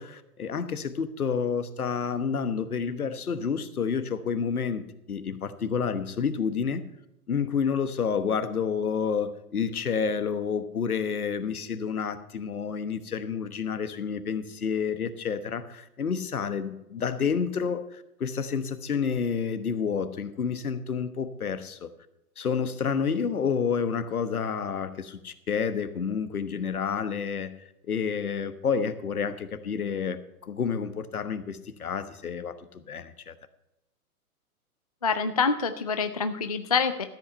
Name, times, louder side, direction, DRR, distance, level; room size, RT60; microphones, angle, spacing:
voice 1, 0.0-6.8 7.3-17.8 18.2-21.9 22.4-27.5 27.9-30.2 30.5-32.6 32.9-33.3, left 6 dB, 70° left, 12 dB, 1.2 m, -29 dB
voice 2, 35.0-37.0, left 5 dB, 30° left, 9 dB, 0.3 m, -26 dB
13.5 x 8.2 x 5.4 m, 0.87 s
figure-of-eight pair, 115°, 46 cm